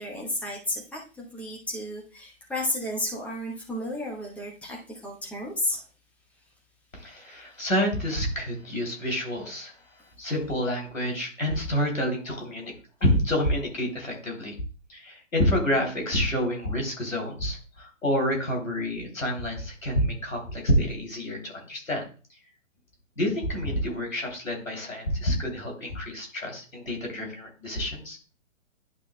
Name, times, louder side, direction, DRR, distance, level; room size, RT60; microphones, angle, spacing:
voice 1, 0.0-5.8, left 1 dB, 5° left, -2 dB, 1.0 m, -32 dB
voice 2, 6.9-9.7 10.2-12.7 13.0-14.5 14.9-22.0 23.2-28.2, equal, 80° left, 1 dB, 3.2 m, -28 dB
10.5 x 5.9 x 2.2 m, 0.36 s
figure-of-eight pair, 130°, 39 cm